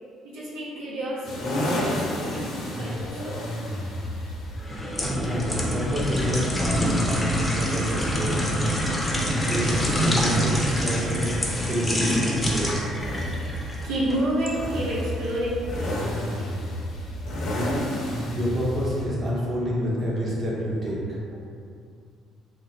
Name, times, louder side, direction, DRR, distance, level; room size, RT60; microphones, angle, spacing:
voice 1, 0.2-3.2 8.6-8.7 10.4-10.5 13.8-16.5 19.9-20.0 21.3-21.4, right 1 dB, 90° right, -7 dB, 0.7 m, -30 dB
sound 1, 1.2-19.0, equal, 65° left, 0.9 m, -32 dB
sound 2, 4.6-14.6 15.0-15.2, equal, 15° left, 0.7 m, -26 dB
voice 2, 5.0-8.4 9.4-11.3 11.7-12.7 18.3-21.0, equal, 40° right, -5 dB, 0.9 m, -28 dB
3.3 x 2.1 x 4.0 m, 2.4 s
supercardioid pair, 85°, 0 cm